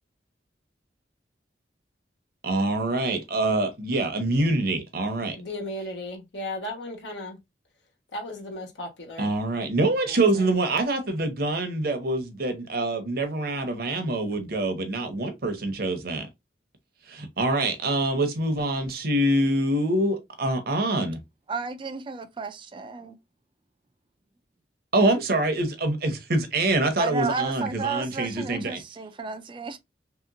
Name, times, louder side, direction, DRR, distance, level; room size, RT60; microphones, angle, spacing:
voice 1, 2.4-5.4 9.2-16.3 17.1-21.2 24.9-28.8, right 2 dB, 55° right, 0.8 m, -25 dB
voice 2, 5.3-7.4 8.1-9.3, left 1 dB, 80° left, 1.2 m, -35 dB
voice 3, 21.5-23.2 27.0-29.8, right 5 dB, 30° right, 0.3 m, -32 dB
3.1 x 2.9 x 2.5 m
head